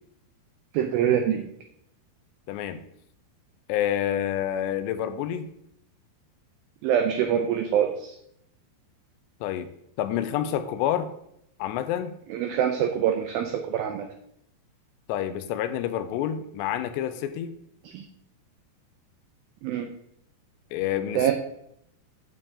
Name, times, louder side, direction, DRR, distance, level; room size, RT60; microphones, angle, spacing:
voice 1, 0.7-1.4 6.8-8.1 12.3-14.1 17.9-18.0 19.6-19.9 21.2-21.3, right 9 dB, 85° right, 5 dB, 2.1 m, -24 dB
voice 2, 2.5-2.8 3.7-5.5 9.4-9.7 10.0-11.1 11.6-12.2 15.1-17.6 20.7-21.3, left 10 dB, 85° left, 10 dB, 2.7 m, -28 dB
9.8 x 7.0 x 3.7 m, 0.75 s
omnidirectional pair, 5.0 m